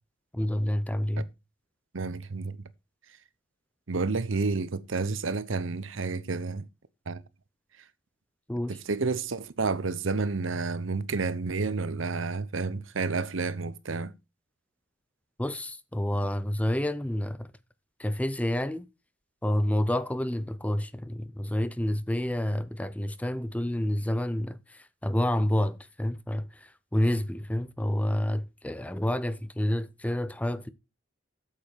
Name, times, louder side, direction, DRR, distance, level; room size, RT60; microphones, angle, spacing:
voice 1, 0.3-1.3 8.5-8.8 15.4-17.5 18.0-18.9 19.4-30.7, left 1 dB, 5° left, 0.6 m, -29 dB
voice 2, 1.9-2.6 3.9-6.6 7.1-7.2 8.7-14.1, right 4 dB, 90° right, 0.8 m, -30 dB
8.6 x 7.5 x 4.5 m
head